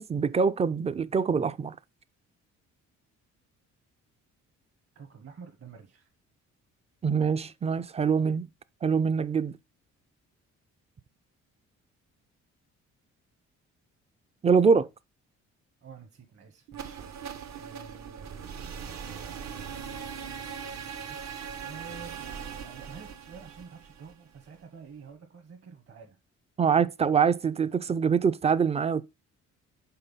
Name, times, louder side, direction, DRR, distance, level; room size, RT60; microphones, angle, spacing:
voice 1, 0.0-1.8 7.0-8.5 8.8-9.6 14.4-14.9 26.6-29.0, right 6 dB, 20° right, 0.4 m, -24 dB
voice 2, 4.9-6.1 15.8-17.0 17.6-18.9 21.0-22.3 22.6-26.2, right 5 dB, 50° right, 1.2 m, -49 dB
sound 1, 16.7-24.6, right 7 dB, 65° right, 1.0 m, -40 dB
5.7 x 3.9 x 5.4 m
cardioid pair, 90°, 30 cm